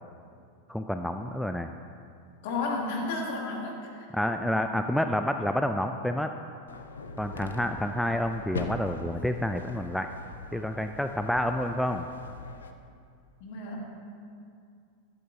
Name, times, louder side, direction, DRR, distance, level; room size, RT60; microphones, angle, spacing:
voice 1, 0.7-1.7 4.1-6.3 7.2-10.1 10.5-12.0, left 1 dB, ahead, 6 dB, 0.4 m, -29 dB
voice 2, 2.4-4.1 13.4-13.8, left 3 dB, 50° left, -1 dB, 2.1 m, -32 dB
sound 1, 6.7-12.7, left 3 dB, 70° left, 0.7 m, -41 dB
14.5 x 12.0 x 2.7 m, 2.3 s
figure-of-eight pair, 90°, 0 cm